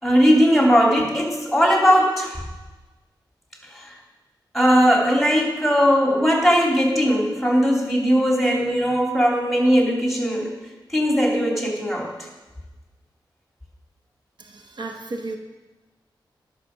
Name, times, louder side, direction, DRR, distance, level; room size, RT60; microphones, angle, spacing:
voice 1, 0.0-2.4 3.7-3.9 4.5-10.5 10.9-12.1, equal, ahead, -1 dB, 2.6 m, -19 dB
voice 2, 14.4-15.4, right 2 dB, 65° right, 3 dB, 1.0 m, -33 dB
12.0 x 6.0 x 6.2 m, 1.2 s
wide cardioid pair, 100°, 8 cm